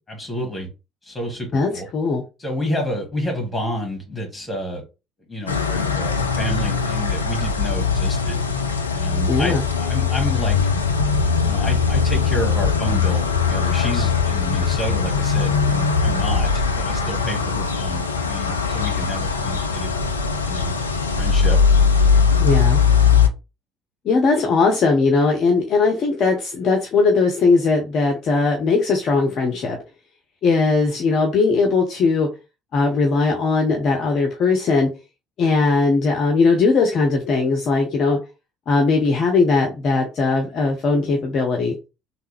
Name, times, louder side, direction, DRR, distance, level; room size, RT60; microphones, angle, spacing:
voice 1, 0.1-0.7 1.0-1.9 2.4-4.8 5.3-8.4 9.0-10.6 11.4-19.9 20.4-20.7 21.2-21.6, left 1 dB, 20° left, 1.8 m, -29 dB
voice 2, 1.5-2.2 9.3-9.6 22.4-22.8 24.0-29.8 30.4-32.3 32.7-34.9 35.4-38.2 38.7-41.7, left 4 dB, 45° left, 0.6 m, -19 dB
sound 1, 5.5-23.3, left 5 dB, 80° left, 0.3 m, -20 dB
3.3 x 2.4 x 3.3 m
figure-of-eight pair, 55°, 0 cm